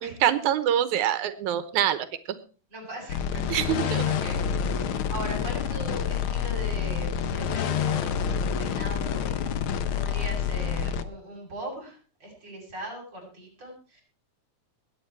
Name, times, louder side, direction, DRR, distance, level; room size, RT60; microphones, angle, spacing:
voice 1, 0.0-2.1 3.5-4.0, right 10 dB, 90° right, 13 dB, 2.4 m, -25 dB
voice 2, 2.7-3.4 4.0-4.5 5.1-9.5 9.9-14.0, right 1 dB, 35° right, -1 dB, 8.7 m, -39 dB
sound 1, 3.1-11.0, left 8 dB, 60° left, 1.4 m, -28 dB
21.5 x 9.6 x 4.7 m, 0.38 s
omnidirectional pair, 3.3 m